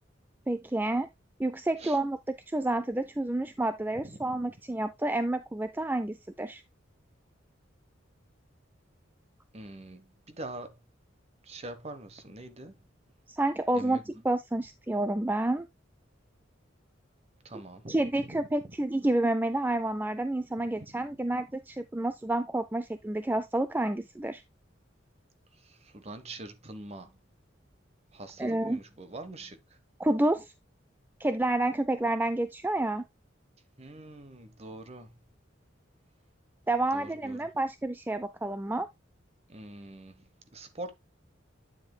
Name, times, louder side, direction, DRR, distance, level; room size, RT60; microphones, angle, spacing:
voice 1, 0.5-1.1 1.4-6.6 13.3-15.7 17.9-24.4 28.4-28.8 30.0-30.5 31.2-33.0 36.7-38.9, right 1 dB, 10° right, 0.4 m, -29 dB
voice 2, 4.0-4.3 9.5-10.8 11.4-12.8 13.7-14.0 17.4-18.7 20.9-21.0 25.6-27.2 28.1-29.8 33.8-35.2 36.9-37.5 39.5-40.9, right 2 dB, 35° right, 1.0 m, -44 dB
9.3 x 7.5 x 2.2 m
head